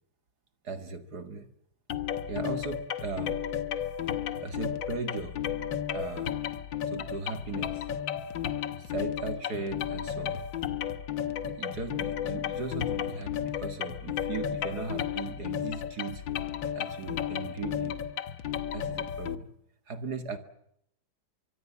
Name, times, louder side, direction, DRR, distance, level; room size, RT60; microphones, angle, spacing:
voice 1, 0.6-1.5 2.3-3.4 4.4-5.4 5.9-6.4 6.9-7.8 8.8-10.5 11.4-16.2 16.7-18.0 18.7-19.5 19.9-20.4, right 4 dB, 50° right, 8 dB, 2.4 m, -37 dB
sound 1, 1.9-19.4, left 9 dB, 65° left, 1.8 m, -33 dB
24.0 x 24.0 x 7.3 m, 0.74 s
omnidirectional pair, 2.3 m